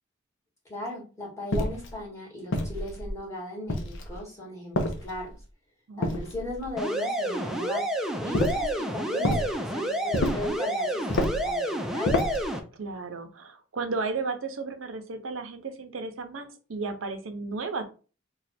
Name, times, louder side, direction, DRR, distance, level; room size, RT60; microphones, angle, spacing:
voice 1, 0.7-5.3 6.0-7.8 8.2-12.2, left 1 dB, 15° left, -4 dB, 1.6 m, -37 dB
sound 1, 1.5-1.9 2.5-3.2 3.7-4.2 4.7-5.4 6.0-6.7 8.3-8.7 9.2-9.5 10.1-10.5 11.1-11.5 12.0-12.5, left 1 dB, 65° left, 0.7 m, -28 dB
voice 2, 5.9-6.2 12.7-17.8, right 4 dB, 75° right, 7 dB, 0.7 m, -34 dB
sound 2, 6.8-12.6, right 1 dB, ahead, 0.5 m, -29 dB
3.1 x 2.3 x 4.2 m, 0.36 s
head